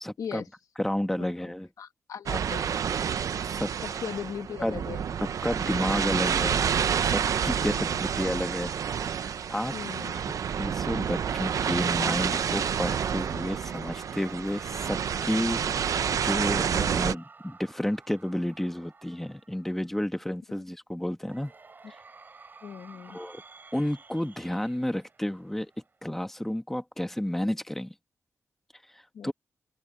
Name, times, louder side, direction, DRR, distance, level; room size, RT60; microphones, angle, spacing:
voice 1, 0.0-0.4 0.8-1.7 3.5-3.7 4.6-4.8 5.2-6.7 7.0-8.7 9.1-9.7 10.6-15.9 16.2-21.5 23.1-23.4 23.7-25.7 26.0-27.9 29.2-29.3, left 1 dB, 5° left, 1.3 m, -31 dB
voice 2, 1.8-2.7 3.8-5.1 7.6-8.0 9.7-10.3 20.5-20.6 22.6-23.2 29.1-29.3, left 7 dB, 85° left, 1.4 m, -39 dB
sound 1, 2.3-17.1, right 7 dB, 80° right, 0.7 m, -29 dB
Cheering / Crowd, 12.6-19.9 21.2-26.0, right 4 dB, 35° right, 6.4 m, -51 dB
open air
wide cardioid pair, 155°, 6 cm